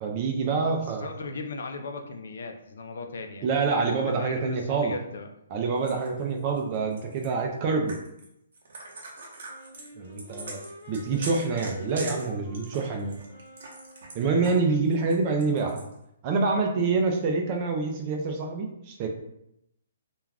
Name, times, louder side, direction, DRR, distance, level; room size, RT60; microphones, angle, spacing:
voice 1, 0.0-1.1 3.4-4.9 5.5-8.0 10.0-10.6 10.9-13.2 14.1-15.8 16.2-19.1, right 4 dB, 25° right, 3 dB, 0.3 m, -26 dB
voice 2, 0.8-3.5 4.0-5.3, left 3 dB, 65° left, 5 dB, 0.4 m, -37 dB
sound 1, 5.8-7.3 7.9-8.3 8.5-14.6 14.9-15.9, right 2 dB, 60° right, 0.7 m, -42 dB
Wind instrument woodwind instrument, 9.5-14.2, left 1 dB, 20° left, 1.1 m, -48 dB
2.3 x 2.2 x 3.3 m, 0.80 s
hypercardioid pair, 170°, 0 cm